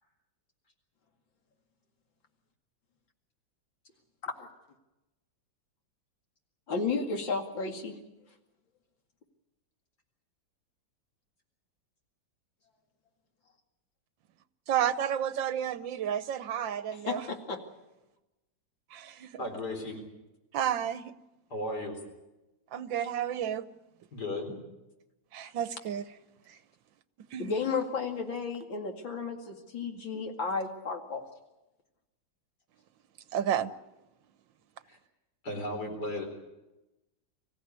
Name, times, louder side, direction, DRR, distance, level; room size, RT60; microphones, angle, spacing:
voice 1, 6.7-8.0 16.9-17.6 27.4-31.2, left 4 dB, 85° left, 3 dB, 3.1 m, -33 dB
voice 2, 14.7-17.2 18.9-19.3 20.5-21.1 22.7-23.7 25.3-26.0 26.5-26.6 27.3-27.6 33.3-33.7, right 9 dB, 80° right, 13 dB, 1.7 m, -31 dB
voice 3, 19.4-20.0 21.5-22.0 24.1-24.6 34.9-35.0 35.4-36.2, left 1 dB, 60° left, 3 dB, 4.7 m, -35 dB
25.0 x 15.5 x 9.7 m, 1.0 s
omnidirectional pair, 2.0 m